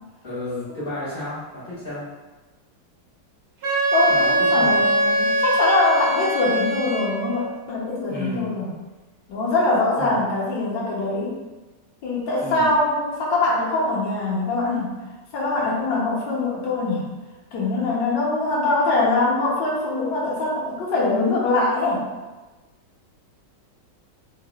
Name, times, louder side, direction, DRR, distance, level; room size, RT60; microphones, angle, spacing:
voice 1, 0.2-2.1 4.1-4.9 8.1-8.5 10.0-10.2 12.4-12.7, left 1 dB, 30° left, -10 dB, 1.5 m, -32 dB
Wind instrument woodwind instrument, 3.6-7.4, right 1 dB, 60° right, 1.3 m, -21 dB
voice 2, 3.9-8.7 9.3-11.3 12.0-14.9 15.3-17.1 17.5-22.0, left 2 dB, 85° left, -5 dB, 1.6 m, -23 dB
3.7 x 3.4 x 2.4 m, 1.2 s
omnidirectional pair, 1.9 m